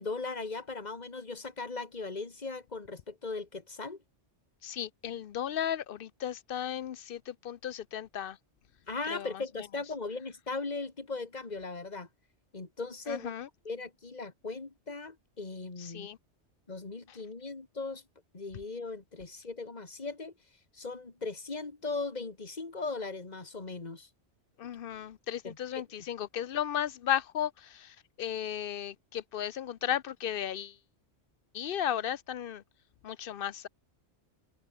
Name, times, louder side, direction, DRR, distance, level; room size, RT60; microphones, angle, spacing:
voice 1, 0.0-4.0 8.9-12.1 12.5-13.3 13.6-16.1 16.7-18.0 18.3-20.3 20.7-24.1 25.4-25.8, left 3 dB, 35° left, 2.2 m, -38 dB
voice 2, 4.6-8.4 9.1-9.4 13.1-13.5 15.8-16.2 24.6-30.8 31.5-32.6 33.0-33.7, left 10 dB, 60° left, 0.7 m, -35 dB
omnidirectional pair, 1.2 m